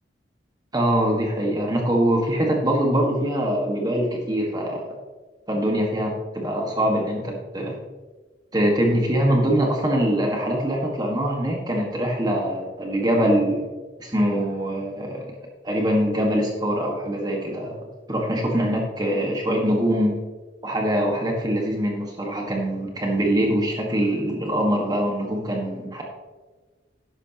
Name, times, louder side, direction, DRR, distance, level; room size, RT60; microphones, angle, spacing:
voice 1, 0.7-4.8 5.5-7.8 8.5-13.6 14.0-15.2 15.6-17.7 18.1-20.2 20.6-26.0, equal, 20° right, 0 dB, 1.5 m, -23 dB
12.0 x 10.5 x 2.9 m, 1.3 s
head